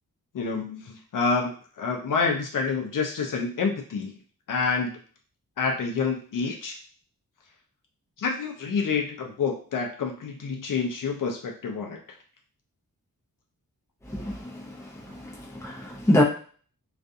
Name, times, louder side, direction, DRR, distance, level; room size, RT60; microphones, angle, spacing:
voice 1, 0.3-1.5 1.8-4.1 4.5-4.9 5.6-6.8 8.2-12.0, left 5 dB, 65° left, 1 dB, 0.5 m, -28 dB
voice 2, 14.1-14.6 15.2-16.2, left 1 dB, 10° left, -4 dB, 0.6 m, -25 dB
2.4 x 2.4 x 2.6 m, 0.42 s
wide cardioid pair, 145°, 34 cm